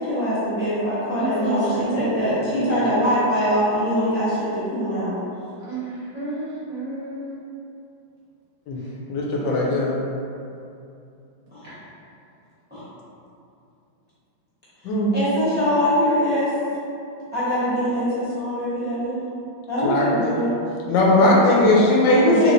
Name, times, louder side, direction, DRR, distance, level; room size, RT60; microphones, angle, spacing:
voice 1, 0.0-5.2 11.5-11.7 12.7-12.8 14.8-16.5 17.3-19.2 19.7-20.5 22.1-22.5, equal, 10° right, -13 dB, 0.6 m, -23 dB
voice 2, 1.2-2.3 2.5-3.0 5.7-7.3, right 2 dB, 60° right, -10 dB, 1.0 m, -30 dB
voice 3, 9.1-10.0 14.8-15.1 19.8-20.3 20.9-22.5, left 2 dB, 75° left, -4 dB, 1.2 m, -18 dB
3.2 x 3.1 x 2.5 m, 2.6 s
omnidirectional pair, 2.1 m